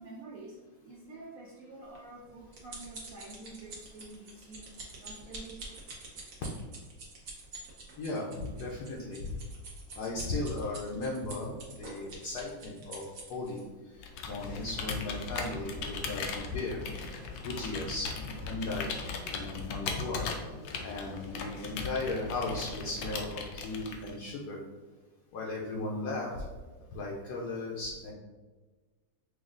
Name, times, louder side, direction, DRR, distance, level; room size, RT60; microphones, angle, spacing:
voice 1, 0.0-5.6, right 2 dB, 70° right, -4 dB, 0.8 m, -48 dB
sound 1, 2.0-13.6 14.3-14.4 14.8-14.9, right 3 dB, 55° right, 1.1 m, -47 dB
voice 2, 8.0-9.3 10.0-11.5 11.8-13.0 13.3-13.6 14.3-16.2 16.5-16.8 17.4-18.1 18.4-18.9 19.3-20.2 20.8-24.6 25.3-26.3 26.9-28.1, left 2 dB, 70° left, -3 dB, 1.1 m, -36 dB
Computer keyboard, 14.0-24.3, left 5 dB, 85° left, 1.3 m, -38 dB
6.2 x 2.3 x 2.4 m, 1.3 s
omnidirectional pair, 2.1 m